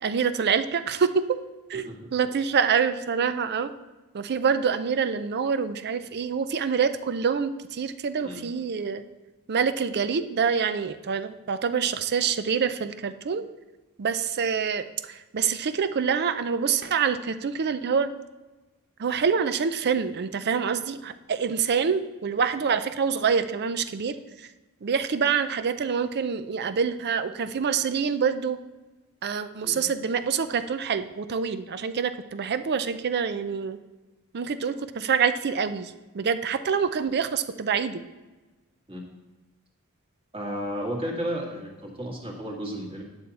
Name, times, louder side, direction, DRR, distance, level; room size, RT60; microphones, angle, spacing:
voice 1, 0.0-1.2 1.7-3.7 4.1-9.0 9.5-13.4 14.0-18.1 19.0-24.2 24.8-28.6 29.2-33.8 34.3-38.0, right 6 dB, 50° right, 11 dB, 0.5 m, -26 dB
voice 2, 40.3-43.0, equal, 25° right, -1 dB, 1.8 m, -33 dB
9.8 x 6.9 x 4.2 m, 1.2 s
head